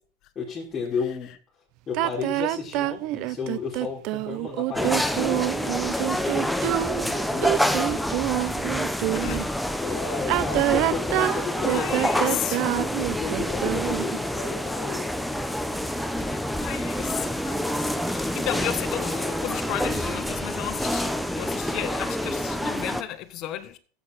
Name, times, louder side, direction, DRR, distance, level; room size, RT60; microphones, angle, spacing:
voice 1, 0.3-1.4 1.9-8.1 9.8-15.1, left 5 dB, 25° left, 4.3 m, -33 dB
sound 1, 1.9-9.5 10.2-14.2, right 17 dB, 55° right, 0.5 m, -26 dB
sound 2, 4.7-23.0, equal, ahead, 0.9 m, -27 dB
voice 2, 9.1-9.5 11.3-11.4 11.7-12.6 16.2-23.8, left 12 dB, 50° left, 1.3 m, -34 dB
14.0 x 8.3 x 4.2 m
supercardioid pair, 110°, 0 cm